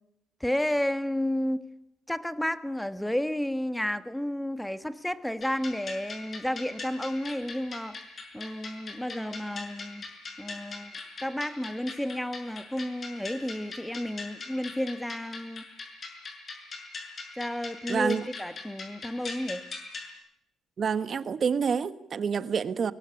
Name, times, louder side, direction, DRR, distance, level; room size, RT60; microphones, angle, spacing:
voice 1, 0.4-1.6 2.1-8.0 8.3-10.0 10.4-10.9 11.2-15.7 17.4-19.7, left 1 dB, 5° left, 1.4 m, -31 dB
sound 1, 5.4-20.1, left 4 dB, 45° left, 6.2 m, -41 dB
voice 2, 17.9-18.3 20.8-22.9, right 6 dB, 50° right, 1.3 m, -28 dB
22.5 x 18.5 x 9.8 m
cardioid pair, 90°, 0 cm